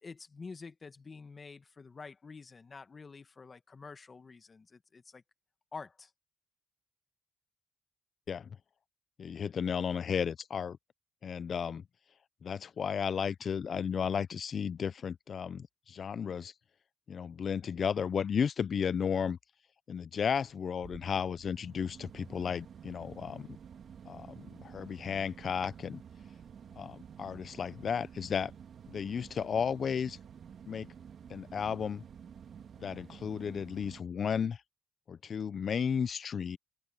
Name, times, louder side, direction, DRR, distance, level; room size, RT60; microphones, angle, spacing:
voice 1, 0.0-5.2 5.7-6.1, left 4 dB, 35° left, 1.4 m, -48 dB
voice 2, 9.2-10.8 11.2-11.8 12.4-16.5 17.1-19.4 19.9-23.5 24.1-26.0 26.8-28.5 28.9-30.2 30.7-30.9 31.3-32.0 32.8-34.6 35.1-36.6, left 7 dB, 50° left, 0.6 m, -34 dB
sound 1, 20.3-34.0, right 7 dB, 55° right, 2.3 m, -51 dB
cardioid pair, 90°, 0 cm